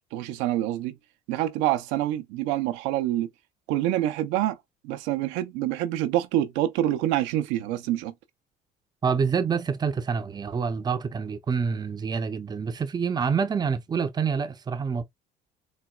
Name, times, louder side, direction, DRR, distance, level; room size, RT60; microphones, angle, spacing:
voice 1, 0.1-1.0 1.3-3.3 3.7-4.6 4.8-8.1, right 13 dB, 85° right, 0.6 m, -26 dB
voice 2, 9.0-15.0, right 6 dB, 20° right, 0.5 m, -27 dB
4.1 x 2.2 x 2.2 m
cardioid pair, 100°, 18 cm